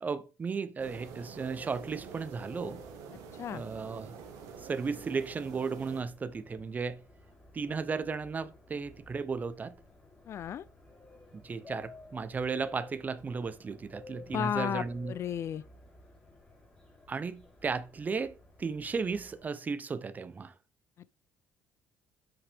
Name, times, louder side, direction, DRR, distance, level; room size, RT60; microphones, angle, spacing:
voice 1, 0.0-2.8 3.5-4.2 4.6-7.0 7.5-9.8 11.3-15.1 17.1-20.5, right 5 dB, 30° right, 0.7 m, -35 dB
sound 1, 0.8-19.4, left 2 dB, 15° left, 3.3 m, -55 dB
sound 2, 0.8-6.0, right 6 dB, 85° right, 1.5 m, -47 dB
voice 2, 10.3-10.6 14.3-15.6, left 9 dB, 50° left, 0.4 m, -33 dB
8.1 x 5.8 x 3.5 m
cardioid pair, 105°, 6 cm